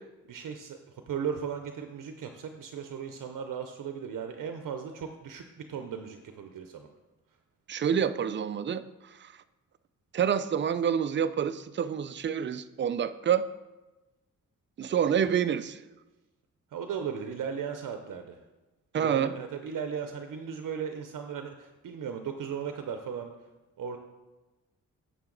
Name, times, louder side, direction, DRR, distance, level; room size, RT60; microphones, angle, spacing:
voice 1, 0.3-6.9 16.7-18.4 19.0-23.3 23.8-24.0, right 7 dB, 75° right, 6 dB, 0.7 m, -36 dB
voice 2, 7.7-9.3 10.1-13.5 14.8-15.8 18.9-19.3, right 8 dB, 35° right, 12 dB, 0.4 m, -28 dB
8.8 x 6.7 x 3.9 m, 1.1 s
cardioid pair, 100°, 32 cm